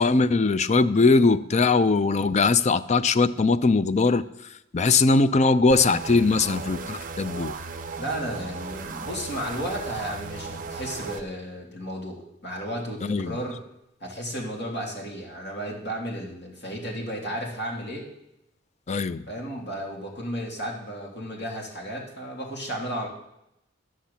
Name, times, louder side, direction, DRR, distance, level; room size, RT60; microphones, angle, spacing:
voice 1, 0.0-4.2 4.7-7.5 13.0-13.4 18.9-19.2, left 3 dB, 35° left, 14 dB, 0.5 m, -20 dB
sound 1, 5.7-11.2, right 4 dB, 45° right, 0.9 m, -36 dB
voice 2, 6.1-6.5 8.0-13.6 14.0-18.1 19.3-23.1, equal, 60° left, -2 dB, 3.0 m, -33 dB
12.0 x 6.4 x 7.0 m, 0.85 s
head